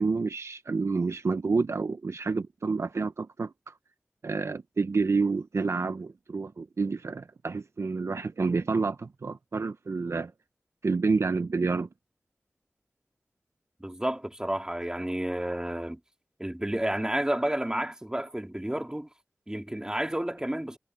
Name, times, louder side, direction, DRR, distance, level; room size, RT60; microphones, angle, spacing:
voice 1, 0.0-3.7 4.2-10.3 10.8-11.9, right 4 dB, 70° right, 0.7 m, -29 dB
voice 2, 13.8-16.0 16.4-19.1 19.5-20.8, right 1 dB, 15° right, 2.5 m, -31 dB
wide cardioid pair, 50°, 5 cm